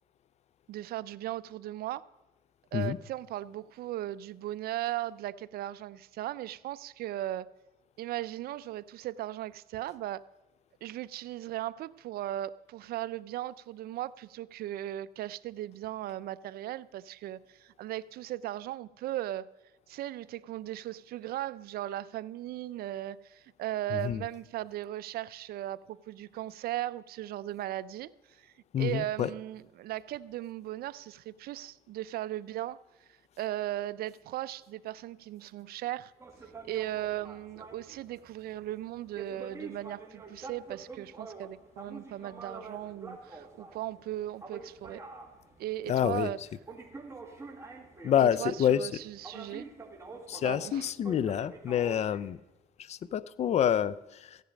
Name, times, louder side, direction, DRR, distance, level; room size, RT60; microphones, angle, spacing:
voice 1, 0.7-2.0 2.7-7.5 8.0-10.3 10.8-19.5 19.9-32.8 33.4-36.1 36.6-45.0 45.6-46.4 48.2-49.7 50.4-50.9, right 14 dB, 65° right, 0.5 m, -37 dB
voice 2, 23.9-24.2 28.7-29.3 45.9-46.3 48.0-48.9 50.3-52.4 52.8-54.4, left 9 dB, 40° left, 0.4 m, -28 dB
sound 1, 36.2-52.3, right 4 dB, 15° right, 1.8 m, -47 dB
14.5 x 10.0 x 5.1 m
cardioid pair, 110°, 17 cm